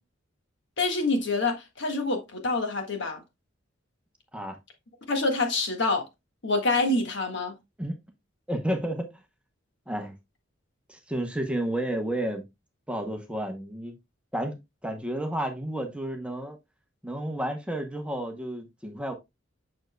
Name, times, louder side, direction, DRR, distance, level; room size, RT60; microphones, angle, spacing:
voice 1, 0.8-3.2 5.1-6.0 6.4-7.5, left 2 dB, 65° left, 1.6 m, -26 dB
voice 2, 8.5-9.2 9.9-10.1 10.9-12.4 12.9-14.0 14.3-16.6 17.0-19.1, right 1 dB, 5° right, 0.8 m, -31 dB
7.1 x 6.4 x 2.2 m
head